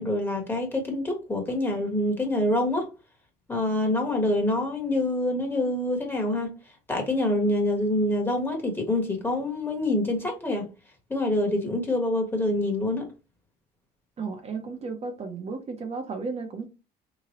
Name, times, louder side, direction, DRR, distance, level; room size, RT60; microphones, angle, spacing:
voice 1, 0.0-2.9 3.5-6.5 6.9-10.7 11.1-13.1, left 1 dB, 10° left, 1.3 m, -26 dB
voice 2, 14.2-16.7, right 4 dB, 40° right, 0.8 m, -34 dB
3.6 x 3.0 x 2.9 m
cardioid pair, 110°, 17 cm